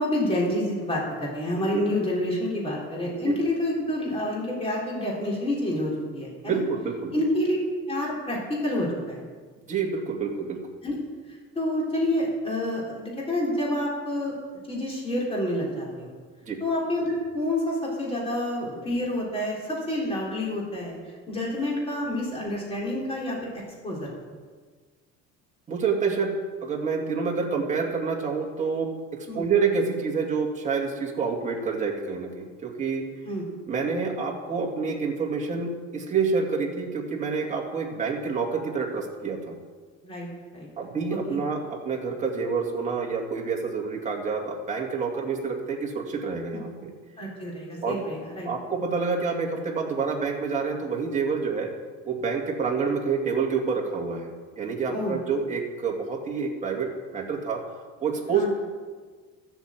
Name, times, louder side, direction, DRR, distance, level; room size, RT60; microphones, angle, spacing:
voice 1, 0.0-6.6 7.1-7.6 7.9-9.2 10.8-11.0 11.6-14.4 14.7-16.1 16.6-21.0 21.3-24.1 29.3-29.5 33.2-33.4 40.0-40.3 40.5-40.7 41.3-41.4 47.2-48.5 54.9-55.1 58.3-58.5, left 1 dB, 20° left, -4 dB, 3.8 m, -28 dB
voice 2, 6.4-7.2 9.7-10.6 16.5-16.6 25.7-26.4 26.6-33.0 33.7-39.6 40.8-46.9 47.8-48.0 48.4-51.7 52.0-57.6 58.0-58.5, right 5 dB, 25° right, -1 dB, 2.2 m, -28 dB
14.0 x 8.1 x 7.5 m, 1.5 s
cardioid pair, 155°, 31 cm